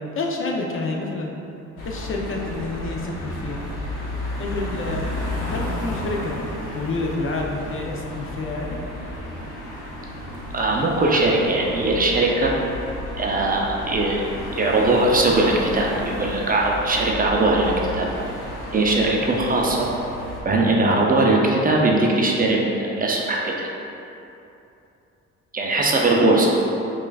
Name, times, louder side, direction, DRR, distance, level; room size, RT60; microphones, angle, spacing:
voice 1, 0.1-1.3 1.8-3.6 4.4-5.2 5.4-6.4 6.7-8.8, left 2 dB, 45° left, 0 dB, 0.5 m, -28 dB
sound 1, 1.8-20.4, left 1 dB, 90° left, 0.9 m, -32 dB
voice 2, 10.5-12.5 13.2-18.1 18.7-19.9 20.5-23.7 25.5-26.5, right 2 dB, 30° right, -1 dB, 0.4 m, -20 dB
5.4 x 2.4 x 2.3 m, 2.8 s
cardioid pair, 90°, 30 cm